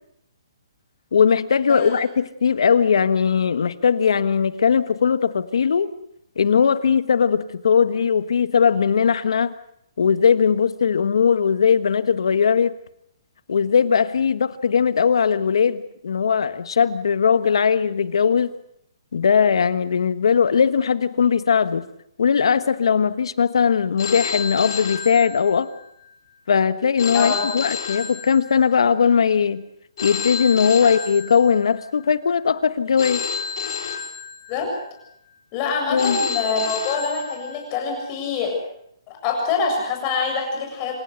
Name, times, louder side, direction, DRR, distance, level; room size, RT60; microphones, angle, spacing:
voice 1, 1.1-5.9 6.4-9.5 10.0-12.8 13.5-18.5 19.1-21.8 22.2-25.7 26.5-29.6 30.0-33.3 35.9-36.2, left 6 dB, 75° left, 14 dB, 1.3 m, -19 dB
voice 2, 1.7-2.0 27.1-27.5 34.5-34.7 35.5-38.6 39.1-40.9, left 4 dB, 25° left, 2 dB, 7.3 m, -25 dB
Telephone, 24.0-25.8 27.0-28.8 30.0-31.8 33.0-34.8 36.0-37.8, left 6 dB, 55° left, 3.7 m, -30 dB
26.5 x 15.5 x 8.1 m, 0.72 s
hypercardioid pair, 160°, 3 cm